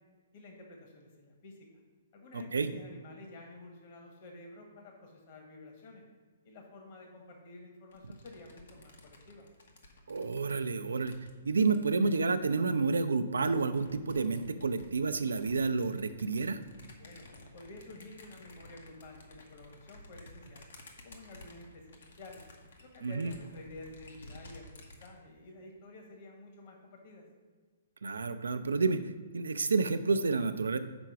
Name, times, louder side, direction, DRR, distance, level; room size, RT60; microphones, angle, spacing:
voice 1, 0.3-1.7 2.1-6.0 6.4-9.5 17.0-17.2 17.5-20.6 21.0-22.4 22.8-27.3, left 2 dB, 45° left, 1 dB, 1.4 m, -51 dB
voice 2, 2.3-2.7 10.1-11.1 11.4-16.6 23.0-23.3 28.0-30.8, right 4 dB, 75° right, 10 dB, 0.5 m, -30 dB
sound 1, 7.9-12.7 13.3-25.1, left 1 dB, 70° left, 1.1 m, -54 dB
6.1 x 4.6 x 5.9 m, 1.5 s
figure-of-eight pair, 125°, 0 cm